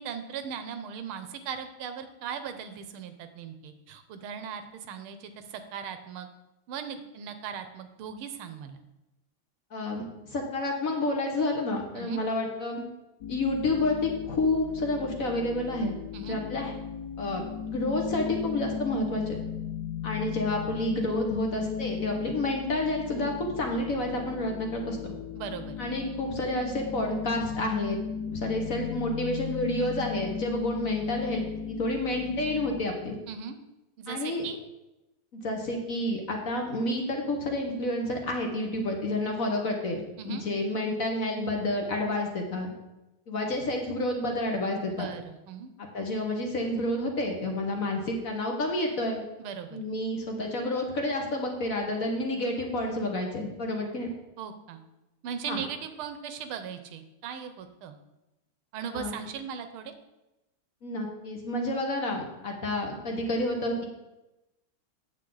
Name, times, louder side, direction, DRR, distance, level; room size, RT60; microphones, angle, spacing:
voice 1, 0.0-6.3 6.7-8.8 11.9-12.2 16.1-16.4 25.3-25.8 33.3-33.6 34.0-34.6 40.2-40.4 44.9-45.7 49.4-49.8 54.4-54.8 55.2-58.0 58.7-59.9, right 7 dB, 90° right, 9 dB, 1.6 m, -38 dB
voice 2, 9.7-12.8 13.3-16.7 17.2-19.4 20.0-25.1 25.8-28.0 28.3-33.1 34.1-34.5 35.3-42.7 43.3-45.1 45.8-49.2 49.7-54.1 55.5-55.6 58.9-59.2 60.8-63.8, left 1 dB, 50° left, 1 dB, 1.3 m, -30 dB
sound 1, 13.2-32.8, left 7 dB, 75° left, 0.9 m, -36 dB
8.8 x 7.2 x 3.9 m, 0.97 s
omnidirectional pair, 2.3 m